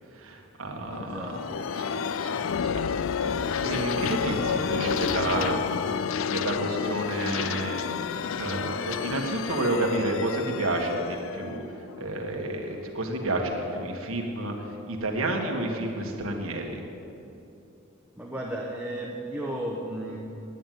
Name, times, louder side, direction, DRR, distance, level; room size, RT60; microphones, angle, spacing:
voice 1, 0.1-2.8 3.2-5.6 6.3-7.8 8.1-11.6 12.0-16.8, right 1 dB, 85° right, 2 dB, 1.7 m, -30 dB
voice 2, 0.8-1.7 4.3-5.7 8.8-8.9 18.2-20.2, right 1 dB, 5° right, -2 dB, 0.9 m, -35 dB
sound 1, 0.9-12.4, left 6 dB, 70° left, 0.4 m, -30 dB
10.0 x 9.2 x 9.3 m, 2.8 s
head